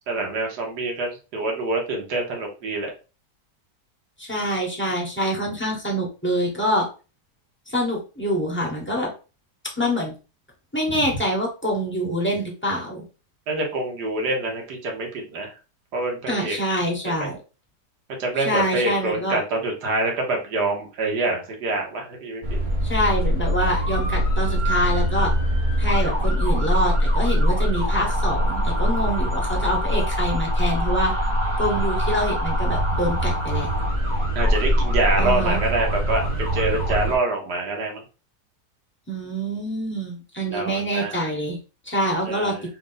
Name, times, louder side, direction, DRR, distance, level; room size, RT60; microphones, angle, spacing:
voice 1, 0.1-2.9 13.5-15.5 15.9-16.6 17.0-17.3 18.2-22.6 29.0-29.3 34.3-38.0 40.5-41.2 42.3-42.6, right 2 dB, 75° right, 1 dB, 1.7 m, -26 dB
voice 2, 4.2-6.9 7.7-9.1 9.6-10.1 10.7-13.0 16.3-17.4 18.4-19.4 22.8-25.3 25.8-31.1 31.6-33.7 35.2-35.6 39.1-41.6 41.9-42.5, equal, 10° left, -2 dB, 0.8 m, -25 dB
sound 1, 22.4-37.2, equal, 35° right, 0.8 m, -23 dB
3.6 x 2.5 x 3.8 m, 0.32 s
omnidirectional pair, 1.8 m